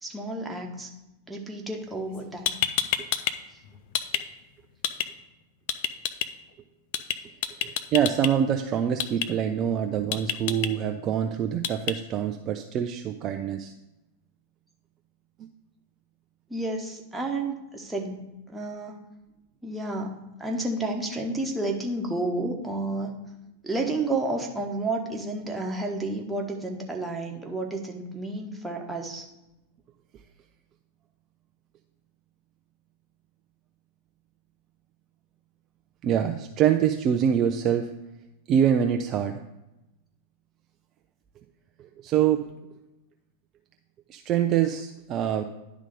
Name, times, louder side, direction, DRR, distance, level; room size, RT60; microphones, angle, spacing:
voice 1, 0.0-0.9 1.3-2.6 16.5-18.2 18.5-19.0 19.6-23.1 23.6-29.3, right 2 dB, 5° right, 0 dB, 1.2 m, -31 dB
sound 1, 2.1-2.2 2.5-3.3 3.6-4.2 4.8-5.1 5.7-6.3 6.9-7.2 7.4-8.3 9.0-9.3 10.1-10.7 11.6-11.9, left 11 dB, 50° left, 0.4 m, -27 dB
voice 2, 7.6-13.7 36.0-37.9 38.5-39.4 42.0-42.5 44.1-45.4, right 9 dB, 35° right, 6 dB, 0.4 m, -25 dB
10.5 x 3.7 x 5.2 m, 0.96 s
figure-of-eight pair, 90°, 0 cm